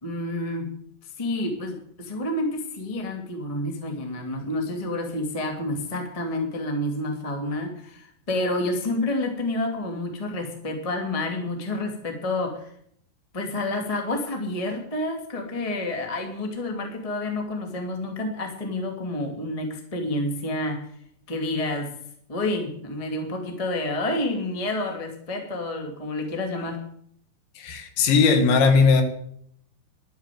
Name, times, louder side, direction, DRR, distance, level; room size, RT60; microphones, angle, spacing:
voice 1, 0.0-0.7 1.0-12.7 13.3-20.8 21.3-21.9 22.3-26.8, left 1 dB, 35° left, 2 dB, 0.5 m, -29 dB
voice 2, 27.6-29.0, left 4 dB, 70° left, 6 dB, 4.0 m, -18 dB
12.0 x 9.7 x 9.2 m, 0.68 s
omnidirectional pair, 5.8 m